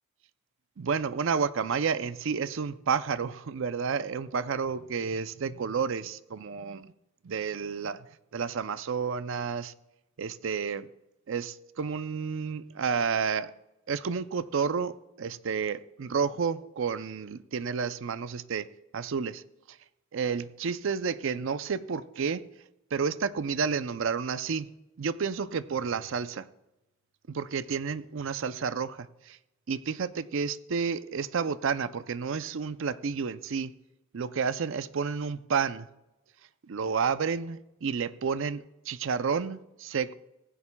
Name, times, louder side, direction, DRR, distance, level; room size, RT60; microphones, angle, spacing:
voice 1, 0.8-6.9 7.2-9.7 10.2-10.9 11.3-13.5 13.9-18.7 18.9-19.4 19.7-19.8 20.1-22.4 22.9-26.5 27.3-29.4 29.7-33.7 34.1-35.9 36.7-40.1, right 6 dB, 60° right, 0.5 m, -31 dB
16.5 x 15.5 x 2.3 m
head